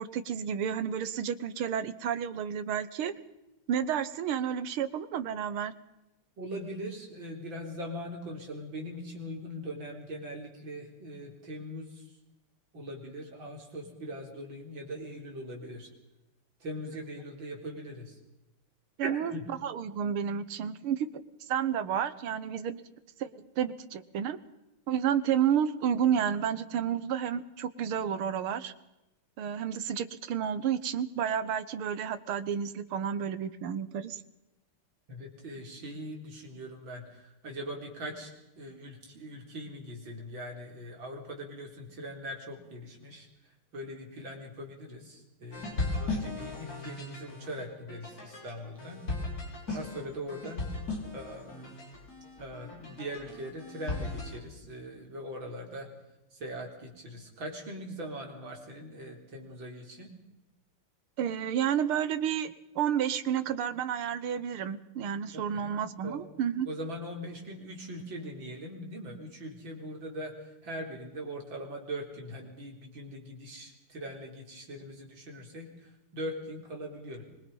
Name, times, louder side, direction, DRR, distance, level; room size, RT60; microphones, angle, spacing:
voice 1, 0.0-3.1 3.7-5.7 19.0-19.3 19.6-21.2 21.5-22.8 23.2-24.4 24.9-28.7 29.4-34.2 61.2-66.7, right 8 dB, 75° right, 13 dB, 2.0 m, -31 dB
voice 2, 6.4-12.1 12.7-15.9 16.6-18.2 19.0-19.4 35.1-43.3 43.7-49.0 49.7-50.7 51.1-51.8 52.4-55.9 56.3-60.1 65.3-65.7 66.0-66.3 66.7-77.2, equal, 60° right, 1 dB, 4.6 m, -41 dB
sound 1, 45.5-54.4, left 2 dB, 40° left, 5.0 m, -37 dB
25.0 x 22.0 x 5.5 m, 0.94 s
omnidirectional pair, 2.4 m